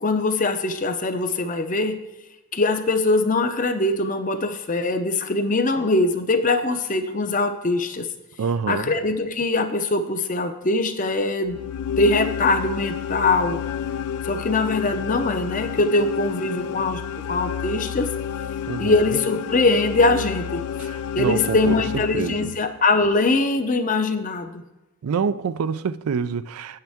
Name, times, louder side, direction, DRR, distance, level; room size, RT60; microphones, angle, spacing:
voice 1, 0.0-2.0 2.5-8.1 8.7-11.6 12.0-13.6 14.2-17.0 17.3-18.1 18.8-20.6 21.2-24.6, left 2 dB, 35° left, 0.6 m, -22 dB
voice 2, 8.4-8.9 18.7-19.0 20.8-21.8 22.1-22.5 25.0-26.8, right 6 dB, 80° right, 0.4 m, -26 dB
sound 1, 11.5-22.8, left 8 dB, 85° left, 0.4 m, -30 dB
8.7 x 8.7 x 3.5 m
head